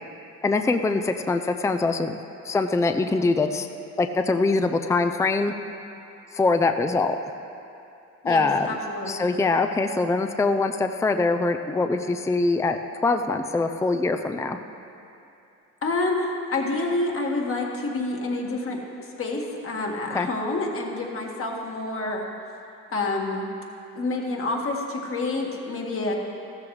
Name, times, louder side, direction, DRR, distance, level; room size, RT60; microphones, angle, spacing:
voice 1, 0.4-2.1 2.4-3.7 4.0-5.5 6.3-7.2 8.2-8.7 9.1-14.6 20.1-20.3, left 3 dB, 10° left, 7 dB, 0.5 m, -23 dB
voice 2, 8.2-9.2 15.8-18.8 19.2-22.3 22.9-23.5 24.0-26.1, left 2 dB, 45° left, -1 dB, 1.9 m, -28 dB
14.5 x 13.0 x 3.3 m, 2.7 s
cardioid pair, 90°, 30 cm